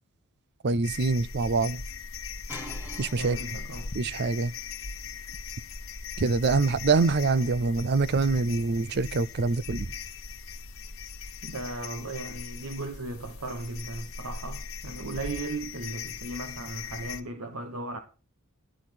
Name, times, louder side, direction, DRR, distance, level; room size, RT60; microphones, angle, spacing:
voice 1, 0.6-1.8 3.0-3.4 3.9-4.5 6.2-9.9, right 3 dB, 50° right, 0.5 m, -25 dB
sound 1, 0.8-17.2, left 5 dB, 65° left, 1.2 m, -39 dB
sound 2, 2.5-8.1, left 1 dB, 10° right, 2.1 m, -49 dB
voice 2, 3.2-3.9 11.4-18.0, right 2 dB, 80° right, 1.1 m, -36 dB
11.5 x 10.5 x 4.4 m
head